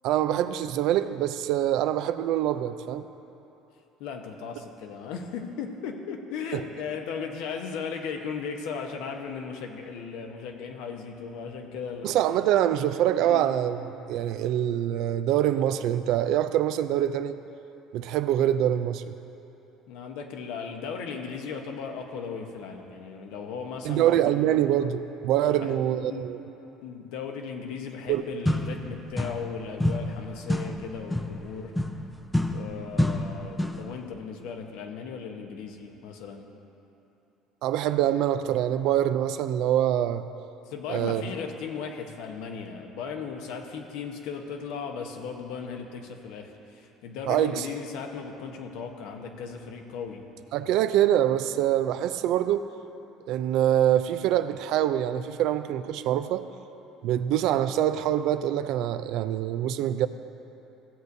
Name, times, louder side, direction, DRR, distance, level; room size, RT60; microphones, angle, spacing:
voice 1, 0.0-3.1 6.5-6.6 12.0-13.8 14.1-17.4 17.9-19.2 23.8-26.4 28.1-28.2 37.6-40.2 40.9-41.2 47.3-47.7 50.5-52.7 53.3-56.5 57.0-60.1, right 11 dB, 70° right, 11 dB, 0.4 m, -25 dB
voice 2, 4.0-12.1 13.2-13.5 19.9-24.3 25.4-25.7 26.1-26.3 26.8-31.7 32.5-36.5 40.7-50.3, left 6 dB, 80° left, 3 dB, 0.9 m, -37 dB
sound 1, 28.1-28.2 28.5-29.6 29.8-33.9, left 1 dB, 5° left, 0.5 m, -29 dB
15.5 x 8.1 x 2.7 m, 2.9 s
cardioid pair, 115°, 0 cm